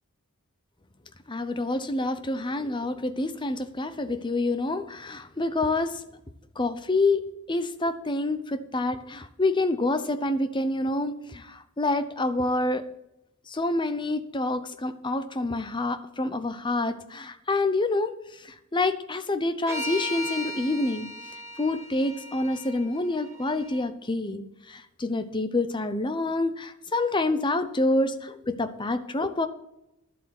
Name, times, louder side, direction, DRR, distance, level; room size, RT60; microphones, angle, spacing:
voice 1, 1.3-6.0 6.6-12.8 13.5-21.1 21.6-29.5, left 2 dB, 20° left, 11 dB, 0.7 m, -27 dB
sound 1, 19.7-23.8, left 1 dB, 10° right, 1.4 m, -37 dB
11.0 x 7.8 x 6.0 m, 0.88 s
head